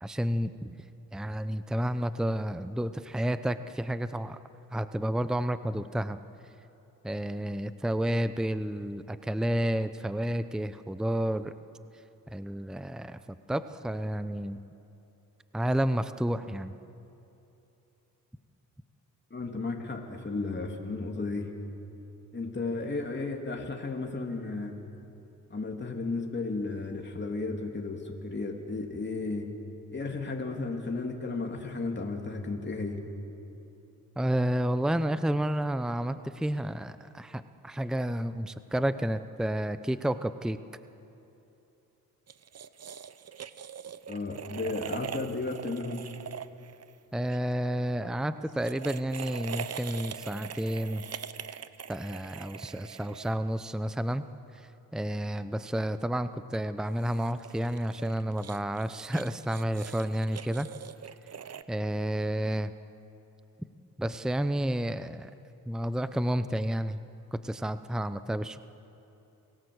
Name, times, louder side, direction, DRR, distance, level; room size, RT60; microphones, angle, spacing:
voice 1, 0.0-0.8 1.1-4.4 4.7-6.2 7.0-11.5 12.3-13.2 13.5-14.6 15.5-16.8 34.2-40.6 47.1-51.0 51.9-54.2 54.5-60.7 61.7-62.7 64.0-65.3 65.7-67.0 67.3-68.6, right 1 dB, ahead, 12 dB, 0.7 m, -30 dB
voice 2, 19.3-21.5 22.3-24.7 25.5-29.5 29.9-33.0 44.1-46.0, left 3 dB, 30° left, 1 dB, 3.0 m, -34 dB
sound 1, 42.3-47.4 48.5-53.7 56.8-61.6, right 7 dB, 45° right, 0.8 m, -42 dB
28.0 x 18.0 x 8.0 m, 2.9 s
cardioid pair, 80°, 36 cm